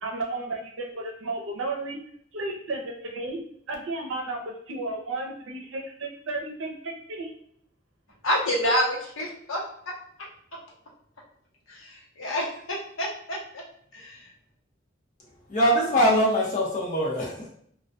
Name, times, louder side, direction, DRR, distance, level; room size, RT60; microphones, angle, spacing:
voice 1, 0.0-2.0 2.3-3.4 3.7-7.3, right 2 dB, 90° right, 2 dB, 0.6 m, -33 dB
voice 2, 8.2-9.6 11.7-13.6 13.9-14.3, equal, 90° left, -4 dB, 0.8 m, -28 dB
voice 3, 15.5-17.5, equal, 40° left, -4 dB, 0.7 m, -22 dB
2.2 x 2.2 x 2.5 m, 0.66 s
head